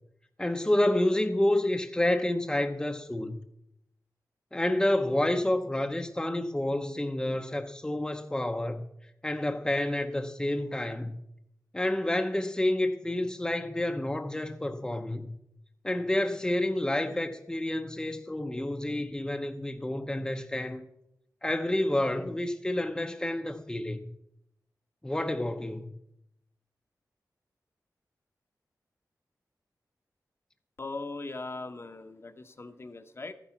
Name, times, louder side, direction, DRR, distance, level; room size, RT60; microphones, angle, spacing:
voice 1, 0.4-3.4 4.5-8.8 9.2-11.2 11.7-15.4 15.8-20.8 21.4-24.1 25.0-26.0, left 1 dB, 10° left, 0.8 m, -29 dB
voice 2, 30.8-33.3, left 3 dB, 40° left, 1.0 m, -39 dB
13.5 x 10.0 x 5.9 m
wide cardioid pair, 105°, 7 cm